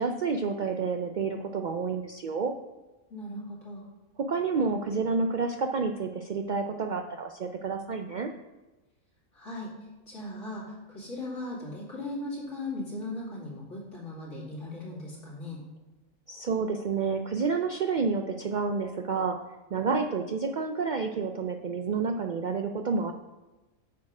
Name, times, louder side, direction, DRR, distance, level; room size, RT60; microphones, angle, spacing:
voice 1, 0.0-2.5 4.2-8.3 16.3-19.4 19.7-23.1, right 4 dB, 90° right, 5 dB, 0.4 m, -29 dB
voice 2, 3.1-3.8 9.3-9.7 10.1-15.6, left 2 dB, 60° left, -5 dB, 2.8 m, -38 dB
8.2 x 6.5 x 4.8 m, 1.1 s
omnidirectional pair, 1.4 m